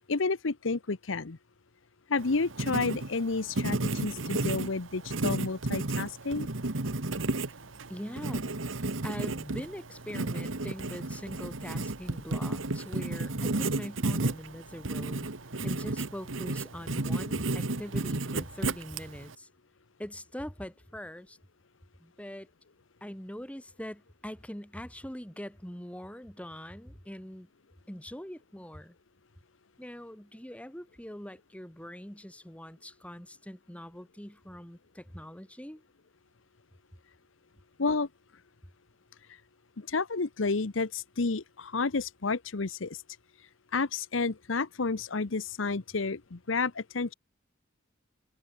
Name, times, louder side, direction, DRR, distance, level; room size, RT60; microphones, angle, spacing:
voice 1, 0.0-1.4 2.1-6.5 37.8-38.1 39.8-43.0 43.7-47.1, left 4 dB, 75° left, 0.9 m, -30 dB
Writing, 2.2-19.3, right 2 dB, 85° right, 1.7 m, -33 dB
voice 2, 7.9-8.5 9.0-15.3 15.6-19.5 20.0-21.4 22.0-22.5 23.0-27.5 27.9-29.0 29.8-35.8, equal, 5° left, 2.7 m, -42 dB
head